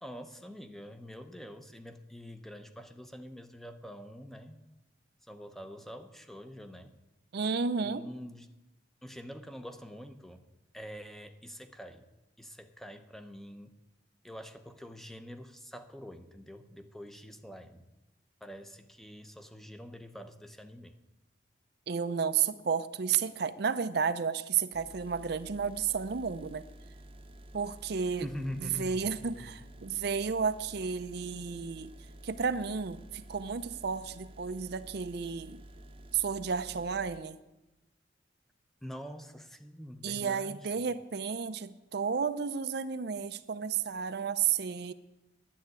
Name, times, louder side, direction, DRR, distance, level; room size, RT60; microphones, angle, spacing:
voice 1, 0.0-4.6 5.3-7.0 7.8-8.5 9.0-10.5 10.7-12.1 12.4-13.7 14.2-17.9 18.4-20.9 28.2-29.5 38.8-40.8, equal, ahead, 8 dB, 0.7 m, -45 dB
voice 2, 7.3-8.0 21.9-26.6 27.5-28.3 28.6-31.9 32.2-35.6 36.1-37.4 40.0-44.9, right 6 dB, 60° right, 12 dB, 0.5 m, -32 dB
sound 1, 24.7-37.2, right 1 dB, 30° right, 0.8 m, -51 dB
10.5 x 7.8 x 9.5 m, 1.0 s
head